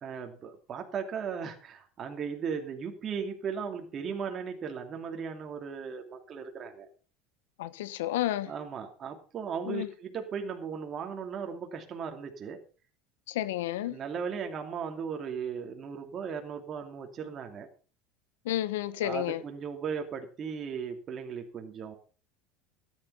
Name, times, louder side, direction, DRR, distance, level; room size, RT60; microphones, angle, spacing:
voice 1, 0.0-6.9 8.5-12.6 13.8-17.7 19.0-21.9, right 6 dB, 35° right, 2.7 m, -37 dB
voice 2, 7.6-8.5 9.6-9.9 13.3-14.0 18.4-19.4, left 13 dB, 85° left, 1.1 m, -31 dB
13.0 x 10.5 x 5.6 m
supercardioid pair, 110°, 0 cm